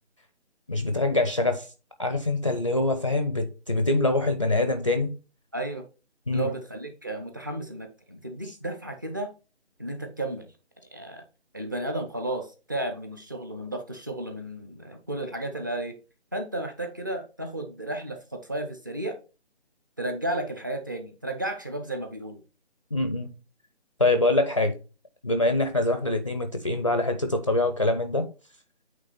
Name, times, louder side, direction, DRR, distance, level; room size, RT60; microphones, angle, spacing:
voice 1, 0.7-1.7 2.0-5.1 6.3-6.5 22.9-23.3 24.0-24.8 25.2-28.2, left 2 dB, 30° left, 0.5 m, -24 dB
voice 2, 5.5-5.9 6.3-9.3 9.8-10.5 10.9-11.2 11.5-15.9 16.3-19.2 20.0-22.4, right 1 dB, 20° right, 0.6 m, -33 dB
8.6 x 3.3 x 4.3 m
figure-of-eight pair, 155°, 34 cm